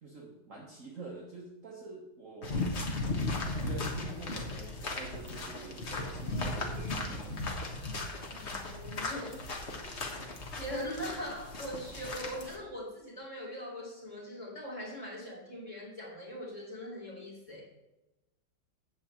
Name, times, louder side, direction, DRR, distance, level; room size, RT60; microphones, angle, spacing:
voice 1, 0.0-2.8 3.5-7.4, right 3 dB, 45° right, -2 dB, 1.6 m, -46 dB
sound 1, 2.4-12.6, left 2 dB, 35° left, 1.5 m, -36 dB
voice 2, 8.3-9.4 9.8-10.0 10.5-17.6, equal, 15° left, -4 dB, 3.9 m, -41 dB
8.5 x 5.5 x 7.7 m, 0.96 s
omnidirectional pair, 2.2 m